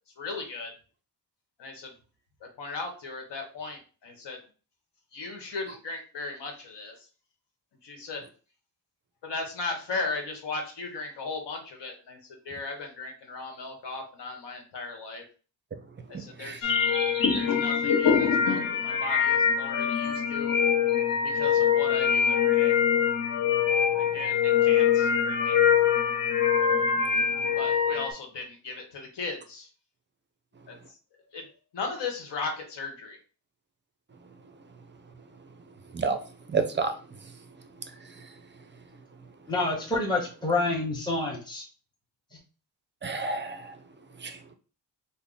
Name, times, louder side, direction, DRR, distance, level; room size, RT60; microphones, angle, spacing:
voice 1, 0.2-0.7 1.6-1.9 2.6-4.4 5.1-7.1 7.8-8.2 9.2-12.2 12.4-15.2 16.1-16.7 17.3-20.6 21.2-22.8 23.9-25.6 27.5-29.7 30.7-30.8 31.3-31.4 31.7-33.2, left 3 dB, 75° left, 2 dB, 1.1 m, -37 dB
sound 1, 16.6-28.1, left 7 dB, 50° left, 1.0 m, -24 dB
voice 2, 36.5-36.9 38.0-38.3 43.0-43.7 44.2-44.4, right 4 dB, 30° right, 7 dB, 0.4 m, -29 dB
voice 3, 39.5-41.7, left 2 dB, 10° left, -3 dB, 0.8 m, -28 dB
3.4 x 2.1 x 3.9 m, 0.37 s
wide cardioid pair, 110°, 42 cm